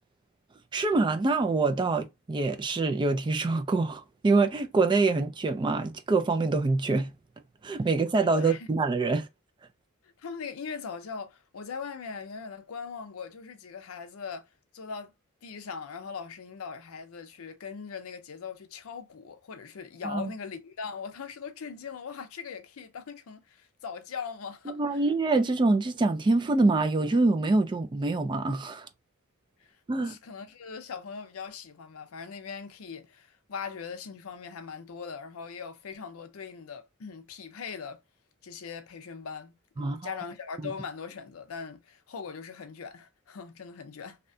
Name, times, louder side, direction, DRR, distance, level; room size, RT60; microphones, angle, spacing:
voice 1, 0.7-7.1 7.6-9.3 20.0-20.3 24.7-28.9 29.9-30.2 39.8-40.2 40.6-40.7, right 3 dB, 20° right, 0.3 m, -25 dB
voice 2, 8.3-8.7 10.0-15.1 15.4-25.0 29.6-38.0 38.4-44.2, left 5 dB, 85° left, 0.5 m, -40 dB
2.7 x 2.1 x 2.6 m
head